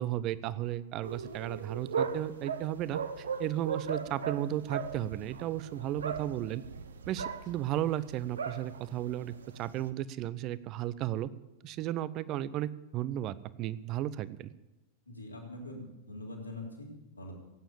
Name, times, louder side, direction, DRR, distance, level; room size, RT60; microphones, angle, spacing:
voice 1, 0.0-6.6 7.1-11.3 11.6-14.5, right 13 dB, 35° right, 18 dB, 0.7 m, -34 dB
sound 1, 1.0-9.9, right 6 dB, 70° right, 0.9 m, -38 dB
voice 2, 15.1-17.3, left 1 dB, 85° left, -1 dB, 3.4 m, -43 dB
17.0 x 9.1 x 8.7 m, 0.99 s
figure-of-eight pair, 90°, 0 cm